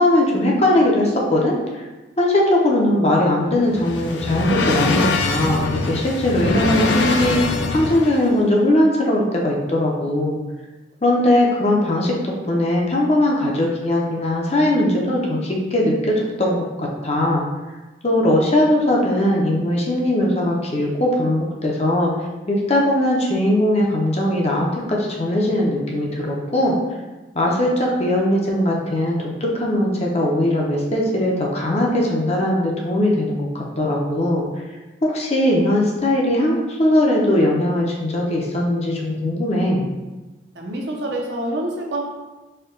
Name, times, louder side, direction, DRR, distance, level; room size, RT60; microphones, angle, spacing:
voice 1, 0.0-1.8 2.2-7.4 7.7-10.4 11.0-17.4 18.0-22.1 22.5-26.8 27.3-34.6 35.0-39.8, left 1 dB, 35° left, -2 dB, 0.6 m, -20 dB
sound 1, 3.4-8.3, left 3 dB, 75° left, 0.4 m, -23 dB
voice 2, 40.5-42.0, right 1 dB, 70° right, -1 dB, 0.7 m, -26 dB
4.4 x 2.3 x 3.7 m, 1.1 s
head